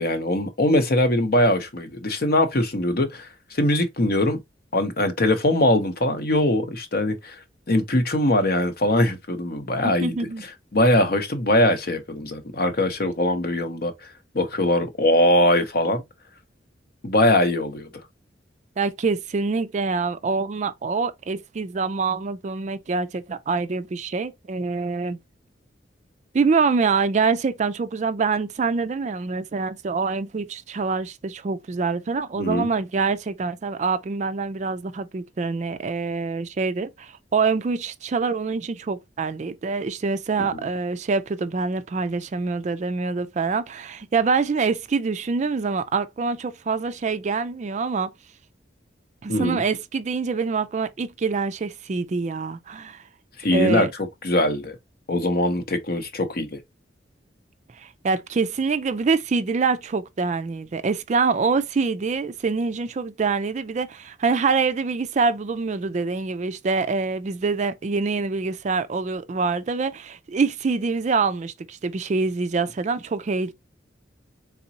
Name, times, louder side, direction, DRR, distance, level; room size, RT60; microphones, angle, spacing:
voice 1, 0.0-4.4 4.7-10.2 10.4-14.1 14.3-16.0 17.0-17.9 32.4-32.7 40.5-40.7 49.3-49.6 53.4-53.9 54.2-54.8 55.1-56.6, left 1 dB, 55° left, 0.9 m, -22 dB
voice 2, 9.8-10.4 18.8-25.2 26.3-48.1 49.2-53.0 53.5-53.9 57.8-73.5, right 4 dB, 40° right, 0.4 m, -25 dB
4.1 x 3.6 x 2.8 m
head